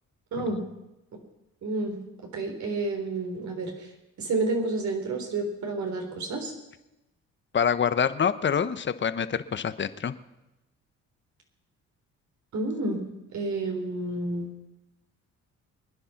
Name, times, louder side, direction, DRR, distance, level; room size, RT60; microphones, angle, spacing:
voice 1, 0.3-0.6 1.6-2.0 2.3-3.9 4.2-6.5 12.5-13.0 13.3-14.5, right 2 dB, 70° right, 2 dB, 3.9 m, -30 dB
voice 2, 7.5-10.1, left 7 dB, 40° left, 13 dB, 1.0 m, -26 dB
23.5 x 10.0 x 5.9 m, 0.95 s
cardioid pair, 90°, 30 cm